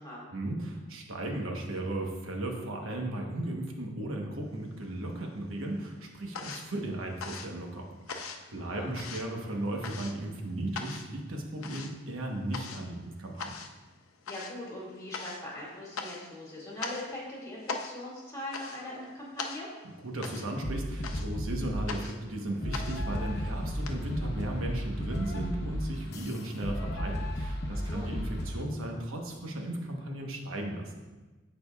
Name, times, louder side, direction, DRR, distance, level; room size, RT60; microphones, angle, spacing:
voice 1, 0.3-13.5 20.0-30.9, right 1 dB, 80° right, 1 dB, 1.1 m, -36 dB
sound 1, 4.6-5.4 5.6-23.9, left 4 dB, 85° left, 0.7 m, -42 dB
voice 2, 8.6-8.9 14.3-19.7 27.7-28.1, left 1 dB, 15° left, -6 dB, 2.2 m, -41 dB
sound 2, 20.6-21.9 22.6-28.6, equal, 50° left, 0.8 m, -34 dB
15.0 x 5.0 x 2.3 m, 1.2 s
head